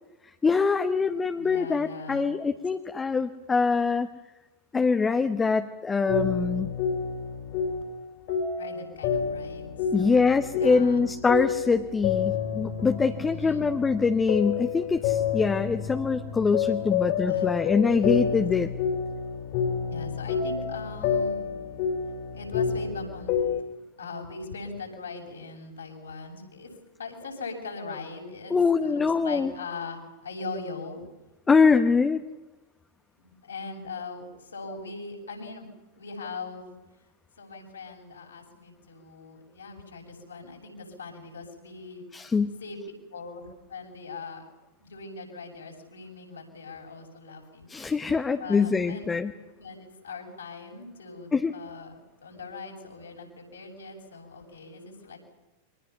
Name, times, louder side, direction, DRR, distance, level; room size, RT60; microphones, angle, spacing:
voice 1, 0.4-4.1 4.7-6.7 9.9-18.7 28.5-29.5 31.5-32.2 42.1-42.6 47.7-49.3 51.3-51.5, left 4 dB, 15° left, 7 dB, 1.1 m, -24 dB
voice 2, 1.0-2.3 8.6-10.2 10.6-11.0 13.3-13.7 17.2-17.5 19.9-21.4 22.3-23.3 24.0-26.7 27.0-28.5 28.8-31.0 33.2-35.7 36.0-36.7 37.4-42.0 42.6-42.8 43.1-44.4 44.8-47.9 48.4-49.0 49.5-55.2, left 4 dB, 70° left, 1 dB, 6.6 m, -40 dB
sound 1, 6.1-8.0 8.3-23.6, left 7 dB, 45° left, 3.8 m, -29 dB
30.0 x 24.5 x 5.8 m, 1.1 s
figure-of-eight pair, 90°, 0 cm